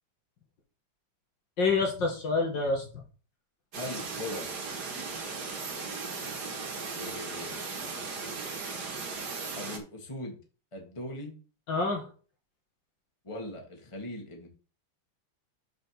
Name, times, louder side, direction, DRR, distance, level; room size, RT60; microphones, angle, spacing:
voice 1, 1.6-2.9 11.7-12.1, left 3 dB, 60° left, 1 dB, 2.2 m, -27 dB
voice 2, 3.7-4.5 6.9-7.6 9.6-10.4 10.7-11.3 13.2-14.5, left 1 dB, 15° left, 1 dB, 1.7 m, -40 dB
sound 1, 3.7-9.8, right 4 dB, 50° right, 1.9 m, -37 dB
5.3 x 5.1 x 6.4 m, 0.38 s
omnidirectional pair, 2.4 m